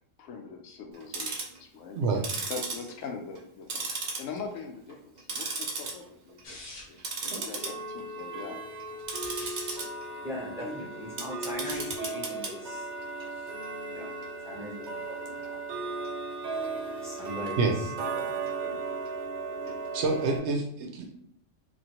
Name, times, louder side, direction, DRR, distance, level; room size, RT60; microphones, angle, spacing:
voice 1, 0.2-2.0 2.5-3.9 4.2-6.4 6.9-8.6 8.8-9.1, left 5 dB, 85° left, 1.0 m, -42 dB
Tick-tock, 0.9-1.6 2.1-3.4 3.7-4.6 4.9-5.9 6.3-6.5 7.0-20.4, right 3 dB, 50° right, 0.5 m, -35 dB
sound 1, 6.4-7.1 9.0-9.8 11.5-12.0, left 2 dB, 55° left, 0.9 m, -45 dB
voice 2, 7.3-7.7 10.6-10.7 17.6-17.8 19.9-21.1, right 3 dB, 65° right, 0.9 m, -28 dB
voice 3, 10.2-12.9 13.9-15.6 16.6-17.7 18.1-18.8, equal, 5° right, 0.7 m, -40 dB
2.9 x 2.5 x 2.8 m
omnidirectional pair, 1.3 m